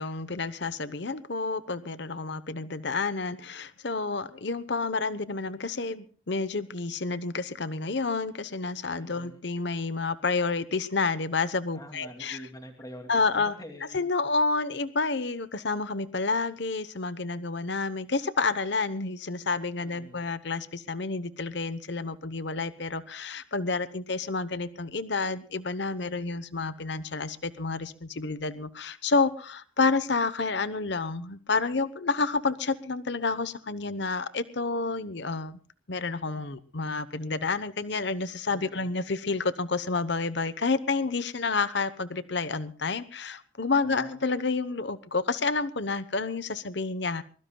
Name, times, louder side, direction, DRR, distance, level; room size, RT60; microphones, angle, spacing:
voice 1, 0.0-12.4 13.1-13.5 13.9-35.6 35.9-47.2, left 4 dB, 55° left, 14 dB, 0.9 m, -29 dB
voice 2, 9.0-9.4 11.7-14.1 19.8-20.2 38.5-38.9 43.8-44.2, equal, 20° left, 3 dB, 2.6 m, -46 dB
23.0 x 21.5 x 2.3 m, 0.41 s
head